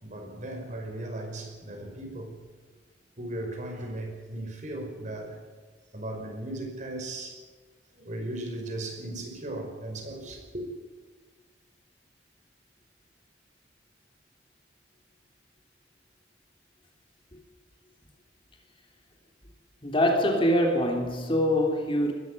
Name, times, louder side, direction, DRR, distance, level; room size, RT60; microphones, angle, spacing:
voice 1, 0.0-2.4 3.2-5.4 5.9-7.4 7.9-10.7, right 1 dB, 45° right, 5.4 m, -37 dB
voice 2, 19.8-22.1, equal, 30° left, 3.3 m, -24 dB
21.0 x 13.5 x 9.7 m
head